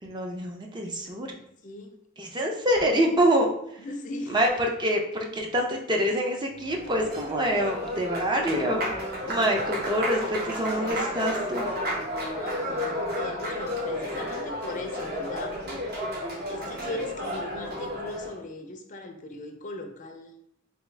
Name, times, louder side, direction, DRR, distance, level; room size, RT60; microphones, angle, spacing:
voice 1, 0.0-1.3 2.2-3.5 4.3-8.9 9.3-11.7, equal, 20° right, 1 dB, 0.4 m, -26 dB
voice 2, 1.6-2.0 3.8-4.5 12.3-15.9 16.5-20.3, left 2 dB, 40° left, 5 dB, 0.4 m, -38 dB
Applause, 6.5-18.4, equal, 50° right, 0.8 m, -32 dB
3.4 x 2.5 x 3.2 m, 0.73 s
head